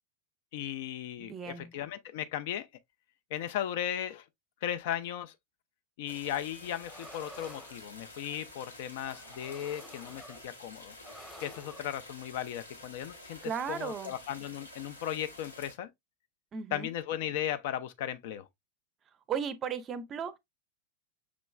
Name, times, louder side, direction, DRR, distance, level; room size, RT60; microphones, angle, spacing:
voice 1, 0.5-2.7 3.3-4.2 4.6-5.3 6.0-10.9 11.4-13.4 13.7-15.9 16.7-18.5, left 11 dB, 50° left, 0.4 m, -36 dB
voice 2, 1.2-1.7 13.4-14.1 16.5-16.9 19.3-20.4, right 7 dB, 25° right, 0.5 m, -36 dB
sound 1, 6.1-15.7, left 1 dB, 85° left, 1.1 m, -50 dB
sound 2, 6.6-8.5 9.0-10.7 11.0-11.9, equal, 5° left, 0.9 m, -51 dB
6.0 x 3.0 x 2.2 m
figure-of-eight pair, 90°, 0 cm